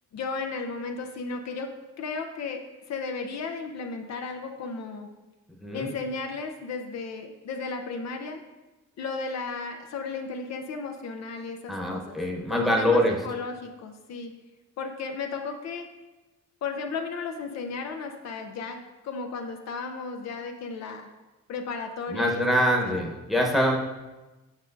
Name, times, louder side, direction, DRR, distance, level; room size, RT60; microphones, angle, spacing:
voice 1, 0.1-2.6 2.9-5.1 5.7-8.4 9.0-12.2 12.5-14.3 14.8-15.9 16.6-21.1 21.5-23.0, left 4 dB, 60° left, 5 dB, 0.6 m, -34 dB
voice 2, 5.6-5.9 11.7-13.1 22.1-23.8, equal, ahead, -1 dB, 1.0 m, -24 dB
8.1 x 5.0 x 2.6 m, 1.1 s
cardioid pair, 90°, 30 cm